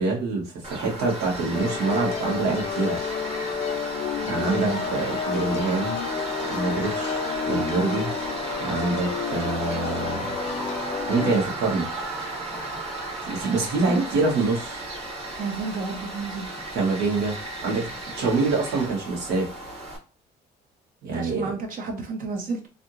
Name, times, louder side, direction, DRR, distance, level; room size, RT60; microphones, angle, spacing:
voice 1, 0.0-3.0 4.3-6.0 6.5-7.2 7.5-8.1 8.6-10.4 11.1-11.9 13.3-14.8 16.7-17.3 17.6-17.9 18.2-19.5 21.0-21.5, right 3 dB, 80° right, -2 dB, 1.7 m, -25 dB
Tools, 0.6-20.0, right 2 dB, 35° right, 1.3 m, -34 dB
sound 1, 1.5-11.4, left 7 dB, 40° left, 0.4 m, -30 dB
voice 2, 4.4-4.8 13.9-14.0 15.4-16.5 21.1-22.6, right 4 dB, 55° right, 3 dB, 0.9 m, -31 dB
3.3 x 2.6 x 2.8 m, 0.35 s
cardioid pair, 110°, 17 cm